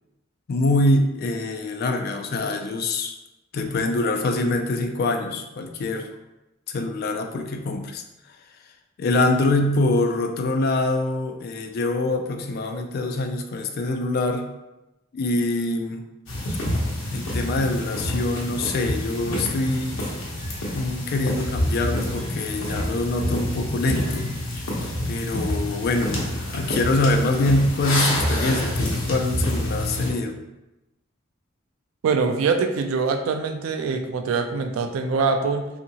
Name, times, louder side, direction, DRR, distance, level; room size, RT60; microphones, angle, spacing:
voice 1, 0.5-3.2 3.5-6.1 6.7-8.0 9.0-14.4 15.1-16.0 17.1-20.0 20.7-24.4 25.1-30.4, left 2 dB, 50° left, 5 dB, 0.3 m, -24 dB
sound 1, 16.3-30.1, left 1 dB, 80° left, 0.7 m, -27 dB
voice 2, 32.0-35.7, right 4 dB, 90° right, 6 dB, 0.3 m, -23 dB
2.7 x 2.5 x 2.8 m, 0.98 s
head